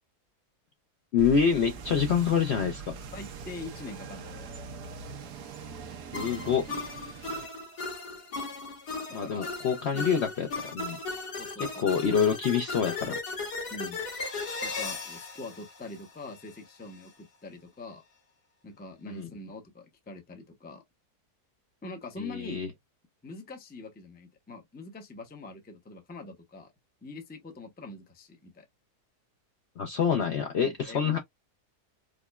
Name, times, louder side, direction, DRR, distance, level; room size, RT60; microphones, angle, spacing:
voice 1, 1.1-3.0 6.1-6.7 9.1-11.0 11.6-13.2 19.1-19.3 22.2-22.7 29.8-31.2, left 7 dB, 65° left, 0.6 m, -26 dB
sound 1, 1.2-7.5, right 5 dB, 85° right, 1.3 m, -42 dB
voice 2, 3.1-4.5 9.2-9.5 11.4-11.9 13.7-14.0 14.6-18.0 18.6-20.8 21.8-22.6 23.2-26.7 27.0-28.7 30.6-31.2, left 2 dB, 10° left, 0.4 m, -43 dB
sound 2, 6.1-16.5, left 3 dB, 90° left, 2.2 m, -37 dB
4.9 x 2.2 x 2.3 m
omnidirectional pair, 1.7 m